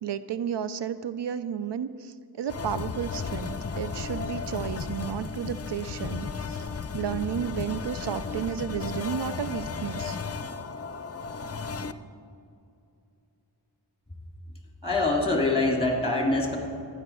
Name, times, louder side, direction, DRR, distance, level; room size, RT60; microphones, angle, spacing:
voice 1, 0.0-6.7 6.9-10.2, right 8 dB, 75° right, 13 dB, 0.5 m, -32 dB
sound 1, 2.5-11.9, left 5 dB, 35° left, 0.6 m, -34 dB
voice 2, 14.8-16.6, left 2 dB, 15° left, 0 dB, 3.3 m, -24 dB
12.5 x 9.9 x 6.2 m, 2.5 s
cardioid pair, 40°, 42 cm